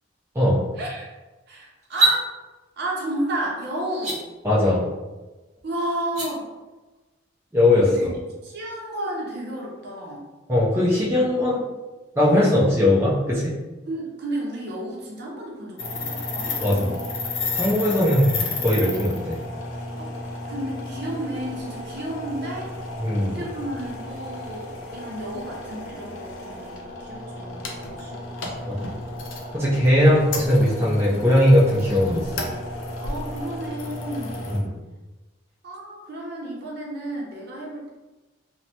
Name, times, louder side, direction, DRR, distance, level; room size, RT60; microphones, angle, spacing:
voice 1, 0.8-1.1 1.5-2.3 2.8-4.2 5.6-6.4 7.8-8.1 8.4-10.2 13.9-17.0 17.8-18.1 20.0-20.1 20.4-22.7 23.2-27.7 28.0-29.1 33.0-34.7 35.6-37.9, right 1 dB, 55° right, -2 dB, 0.7 m, -32 dB
sound 1, 1.8-2.2 3.9-4.2 6.0-6.3, right 2 dB, 40° right, 1.1 m, -21 dB
voice 2, 4.4-4.8 7.5-8.1 10.5-11.6 12.2-13.5 16.6-16.9 17.5-19.4 23.0-23.4 28.7-28.8 29.5-32.3 34.5-34.6, left 1 dB, 15° right, -7 dB, 0.5 m, -19 dB
sound 2, 15.8-34.6, left 2 dB, 75° left, 0.5 m, -33 dB
3.0 x 2.1 x 2.7 m, 1.2 s
head